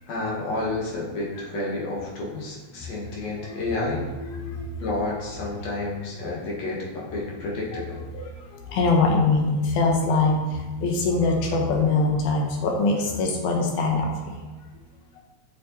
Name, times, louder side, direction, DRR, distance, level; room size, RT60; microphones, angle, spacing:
voice 1, 0.1-4.0 4.8-8.0, left 2 dB, 65° left, -4 dB, 2.4 m, -30 dB
voice 2, 3.4-4.8 7.4-7.8 8.1-14.1, left 3 dB, 90° left, 1 dB, 2.5 m, -24 dB
6.4 x 5.3 x 4.2 m, 1.2 s
omnidirectional pair, 3.3 m